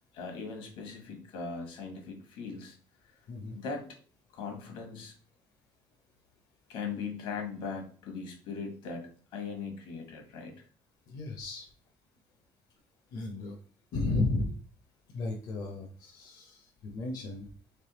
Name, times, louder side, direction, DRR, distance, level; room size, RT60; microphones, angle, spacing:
voice 1, 0.1-2.8 3.0-3.2 3.5-3.9 4.3-5.1 6.7-10.5, left 5 dB, 80° left, 3 dB, 1.2 m, -39 dB
voice 2, 3.3-3.6 11.1-11.7 13.1-13.6 13.9-14.5 15.1-16.7 16.9-17.5, left 2 dB, 50° left, 1 dB, 0.6 m, -33 dB
3.4 x 3.3 x 2.9 m, 0.43 s
cardioid pair, 150°, 9 cm